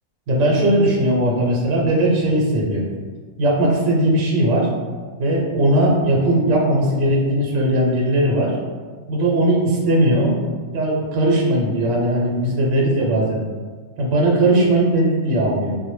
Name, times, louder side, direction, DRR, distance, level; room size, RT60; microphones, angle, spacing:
voice 1, 0.3-2.9 3.4-4.7 5.2-8.6 9.1-10.4 10.7-13.4 14.0-15.8, right 1 dB, 80° right, -2 dB, 0.9 m, -18 dB
2.1 x 2.0 x 3.0 m, 1.4 s
omnidirectional pair, 1.3 m